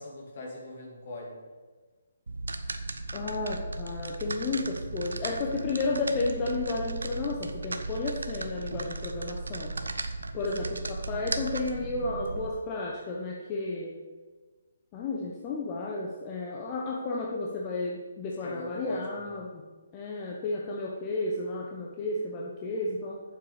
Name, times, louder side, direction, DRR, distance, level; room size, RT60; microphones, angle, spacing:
voice 1, 0.0-1.4 10.6-10.8 17.1-17.2 18.4-19.4, left 2 dB, 50° left, -1 dB, 2.7 m, -41 dB
sound 1, 2.3-12.5, right 2 dB, 75° right, 0.8 m, -36 dB
voice 2, 3.1-9.7 10.3-13.9 14.9-19.6 19.9-23.2, left 3 dB, 25° left, -3 dB, 1.1 m, -32 dB
8.6 x 7.5 x 5.1 m, 1.4 s
figure-of-eight pair, 145°, 0 cm